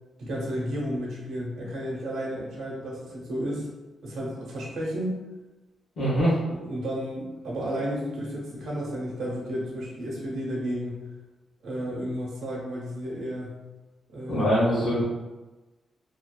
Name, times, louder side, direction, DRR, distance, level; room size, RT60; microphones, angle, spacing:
voice 1, 0.2-3.7 4.0-5.2 6.0-6.1 6.5-11.0 11.6-13.6 14.1-14.7, equal, 85° right, -4 dB, 0.7 m, -32 dB
voice 2, 6.0-6.4 14.3-15.0, equal, 50° left, -9 dB, 0.7 m, -23 dB
2.4 x 2.3 x 2.2 m, 1.1 s
wide cardioid pair, 170°, 0 cm